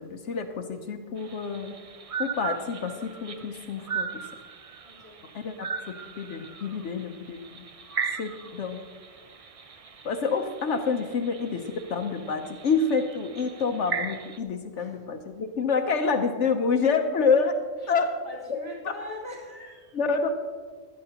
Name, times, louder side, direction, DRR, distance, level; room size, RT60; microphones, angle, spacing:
voice 1, 0.0-1.8 2.2-4.2 5.3-7.4 8.2-8.8 10.0-17.5 17.9-18.1 18.5-18.6 19.9-20.3, left 5 dB, 70° left, 5 dB, 1.0 m, -27 dB
sound 1, 1.2-14.4, right 6 dB, 45° right, 0.4 m, -38 dB
voice 2, 4.8-5.2 14.7-15.0 15.8-16.2 17.8-20.0, left 2 dB, 20° right, -5 dB, 3.5 m, -42 dB
16.0 x 11.5 x 2.9 m, 1.5 s
omnidirectional pair, 1.3 m